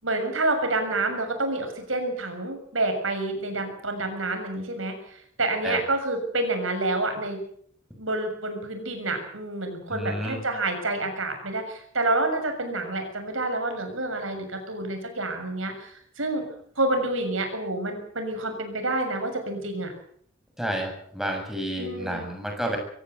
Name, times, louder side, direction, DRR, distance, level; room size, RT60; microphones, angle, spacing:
voice 1, 0.0-7.4 8.0-16.4 16.8-19.9 21.8-22.2, right 2 dB, 75° right, 6 dB, 6.9 m, -28 dB
voice 2, 9.9-10.4 20.6-22.8, equal, ahead, 3 dB, 6.8 m, -30 dB
24.5 x 15.5 x 8.3 m, 0.63 s
head